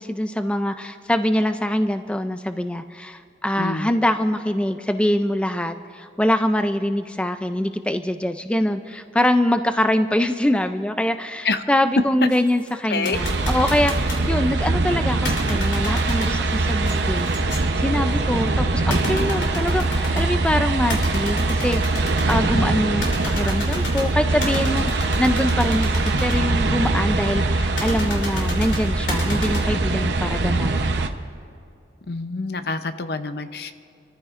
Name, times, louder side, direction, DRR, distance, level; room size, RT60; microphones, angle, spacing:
voice 1, 0.0-21.8 22.3-31.1, left 1 dB, 5° left, 8 dB, 0.3 m, -24 dB
voice 2, 3.6-3.9 11.4-11.6 12.2-12.3 12.9-13.2 22.5-22.7 32.1-33.7, left 3 dB, 60° left, 10 dB, 0.7 m, -26 dB
sound 1, 12.3-14.3 15.2-20.4 20.9-22.4 22.9-26.4 27.8-29.6, left 1 dB, 90° left, 3.3 m, -32 dB
sound 2, 13.1-31.1, right 2 dB, 85° right, 0.8 m, -22 dB
27.0 x 14.0 x 2.5 m, 2.5 s
head